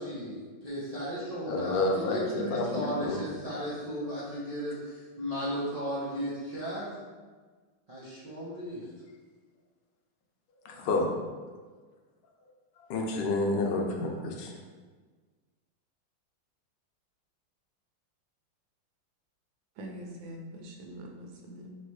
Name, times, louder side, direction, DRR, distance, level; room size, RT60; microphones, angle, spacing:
voice 1, 0.0-6.9 7.9-8.8, equal, 65° right, -10 dB, 0.3 m, -35 dB
voice 2, 1.4-3.2 10.6-11.1 12.9-14.5, left 2 dB, 75° left, 1 dB, 1.3 m, -29 dB
voice 3, 19.8-21.8, equal, 85° right, 1 dB, 1.5 m, -44 dB
3.2 x 2.9 x 4.6 m, 1.4 s
omnidirectional pair, 2.1 m